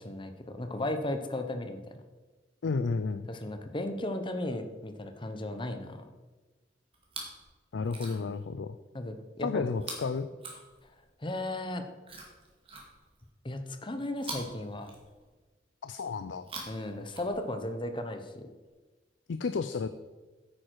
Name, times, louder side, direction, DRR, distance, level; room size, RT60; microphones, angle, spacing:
voice 1, 0.0-1.9 3.3-6.1 8.9-9.6 11.2-11.8 13.4-14.9 16.7-18.5, left 1 dB, 25° left, 8 dB, 0.9 m, -35 dB
voice 2, 2.6-3.3 7.7-8.8 9.4-10.3 15.8-16.5 19.3-19.9, left 4 dB, 85° left, 11 dB, 0.4 m, -32 dB
Chewing mastication, 6.9-7.4 7.8-8.4 9.8-11.1 12.0-13.3 14.2-15.4 16.3-17.7 18.6-18.7, right 3 dB, 30° right, 2.1 m, -45 dB
9.6 x 8.8 x 4.7 m, 1.3 s
head